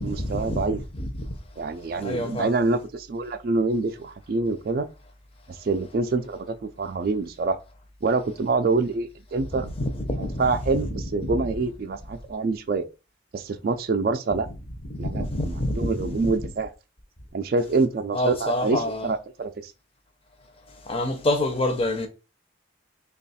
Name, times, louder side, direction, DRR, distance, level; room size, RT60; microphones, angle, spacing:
voice 1, 0.0-0.8 1.6-4.9 5.6-7.6 8.0-9.7 10.2-12.9 13.3-14.5 15.0-16.7 17.3-19.7, right 3 dB, 50° right, 0.3 m, -26 dB
voice 2, 2.0-2.5 9.8-10.5 10.9-11.0 15.0-16.2 18.1-19.1 20.9-22.1, left 1 dB, 30° left, 0.6 m, -26 dB
3.0 x 2.3 x 4.1 m
head